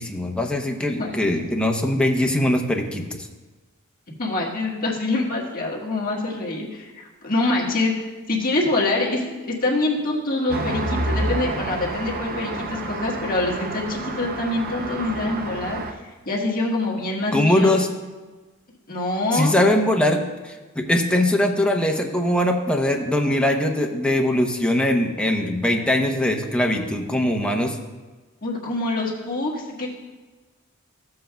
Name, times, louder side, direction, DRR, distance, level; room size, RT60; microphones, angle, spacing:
voice 1, 0.0-3.3 17.3-17.9 19.3-20.2 20.4-27.8, left 1 dB, 5° left, 2 dB, 0.8 m, -21 dB
voice 2, 4.2-7.9 8.3-15.8 16.2-17.7 18.9-19.5 28.4-29.9, left 2 dB, 40° left, -3 dB, 1.5 m, -25 dB
Traffic noise roadway noise, 10.5-15.9, right 2 dB, 45° right, 0.6 m, -29 dB
14.5 x 7.6 x 2.3 m, 1.3 s
head